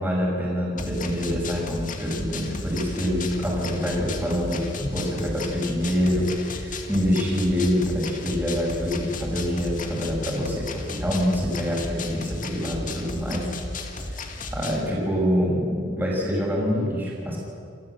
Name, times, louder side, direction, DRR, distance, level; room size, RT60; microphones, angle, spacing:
voice 1, 0.0-13.5 14.0-14.2 14.5-17.4, equal, 10° right, -4 dB, 5.6 m, -26 dB
sound 1, 0.8-14.8, left 2 dB, 45° left, 2.0 m, -35 dB
29.0 x 14.5 x 7.7 m, 2.4 s
head